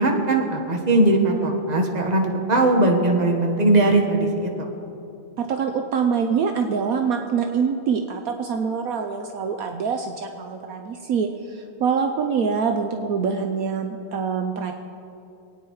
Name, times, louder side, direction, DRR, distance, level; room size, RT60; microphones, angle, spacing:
voice 1, 0.0-4.7, right 2 dB, 25° right, 2 dB, 1.2 m, -20 dB
voice 2, 5.4-14.7, right 6 dB, 75° right, 5 dB, 0.8 m, -25 dB
22.0 x 9.3 x 4.7 m, 2.7 s
omnidirectional pair, 2.3 m